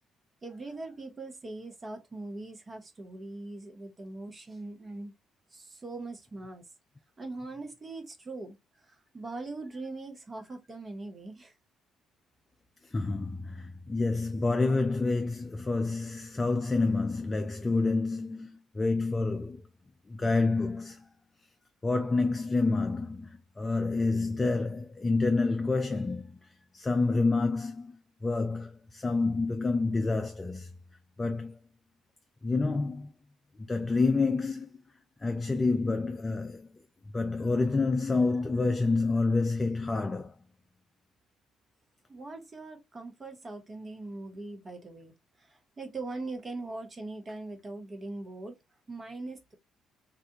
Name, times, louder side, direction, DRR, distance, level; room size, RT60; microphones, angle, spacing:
voice 1, 0.4-5.1 5.5-6.6 7.2-8.6 8.8-11.5 42.1-45.1 45.4-48.6 48.9-49.5, right 2 dB, 30° right, 0.8 m, -41 dB
voice 2, 12.9-18.5 18.7-19.6 20.1-21.0 21.8-26.4 26.7-30.7 31.2-31.6 32.4-33.1 33.6-34.7 35.2-36.7 37.1-40.3, left 3 dB, 25° left, 0.4 m, -28 dB
2.5 x 2.2 x 2.7 m
figure-of-eight pair, 45°, 0 cm